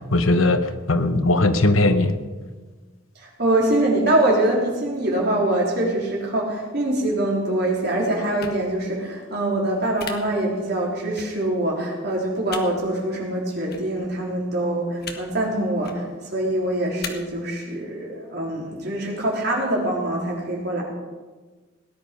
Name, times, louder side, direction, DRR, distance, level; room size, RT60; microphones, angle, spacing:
voice 1, 0.0-2.1, left 2 dB, 85° left, 10 dB, 1.0 m, -19 dB
voice 2, 3.2-20.8, right 1 dB, 50° right, -3 dB, 3.7 m, -24 dB
sound 1, 8.4-8.6 10.0-10.1 11.2-11.3 12.5-12.6 13.7-13.8 15.0-15.2 15.7-16.0 17.0-17.1, left 6 dB, 50° left, 1.4 m, -34 dB
18.0 x 10.5 x 5.2 m, 1.3 s
head